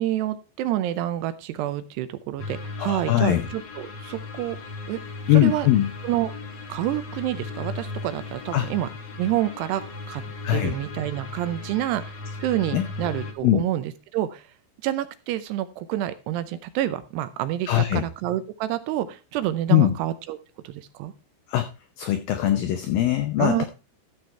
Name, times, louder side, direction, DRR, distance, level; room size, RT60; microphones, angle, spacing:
voice 1, 0.0-4.6 4.9-5.0 5.3-5.7 6.0-6.3 6.7-8.9 9.2-10.2 10.5-14.4 14.8-20.4 20.6-21.1 23.4-23.7, right 13 dB, 80° right, 12 dB, 2.6 m, -28 dB
sound 1, 2.4-13.3, left 3 dB, 60° left, 1.7 m, -36 dB
voice 2, 2.8-3.4 5.3-5.9 8.5-8.7 10.4-10.7 12.7-12.9 13.4-13.6 17.7-18.0 19.7-19.9 21.5-21.6 22.0-23.7, left 13 dB, 85° left, 8 dB, 2.0 m, -21 dB
13.5 x 6.6 x 4.4 m, 0.32 s
omnidirectional pair, 5.1 m